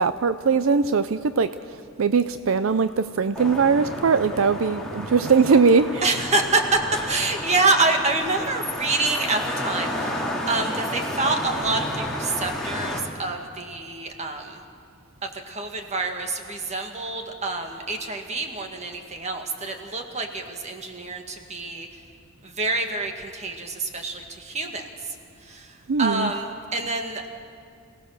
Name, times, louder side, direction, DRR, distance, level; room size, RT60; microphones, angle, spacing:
voice 1, 0.0-6.2 25.9-26.3, right 5 dB, 75° right, 12 dB, 0.5 m, -21 dB
sound 1, 3.3-13.0, left 1 dB, ahead, 2.7 m, -31 dB
voice 2, 6.0-6.8 7.0-14.6 15.2-21.9 22.4-24.9 25.4-27.3, right 3 dB, 35° right, 4 dB, 1.8 m, -27 dB
27.0 x 17.5 x 6.6 m, 2.3 s
head